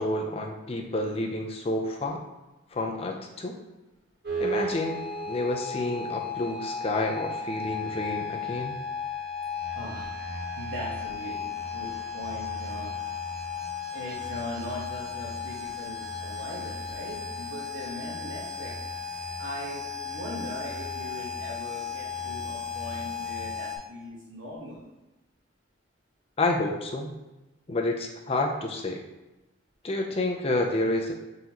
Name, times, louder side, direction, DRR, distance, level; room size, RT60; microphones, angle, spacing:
voice 1, 0.0-2.2 2.7-3.6 4.4-5.0 5.3-8.7 26.4-27.1 27.7-29.0 29.8-31.1, left 2 dB, 30° left, 2 dB, 0.4 m, -29 dB
sound 1, 4.2-23.8, left 4 dB, 50° right, 0.8 m, -35 dB
voice 2, 9.7-10.1 10.6-11.4 11.7-11.9 12.1-12.9 13.9-18.7 19.4-24.8, left 1 dB, 75° right, -6 dB, 1.1 m, -39 dB
4.1 x 3.8 x 2.9 m, 1.0 s
head